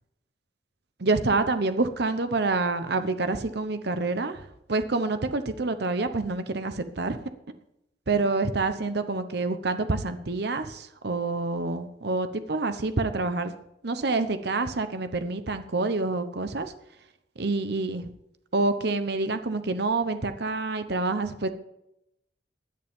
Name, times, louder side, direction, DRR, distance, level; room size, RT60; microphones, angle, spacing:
voice 1, 1.0-7.2 8.1-13.5 13.8-16.7 17.4-18.1 18.5-21.5, right 3 dB, 65° right, 10 dB, 0.9 m, -27 dB
16.0 x 10.5 x 3.6 m, 0.81 s
head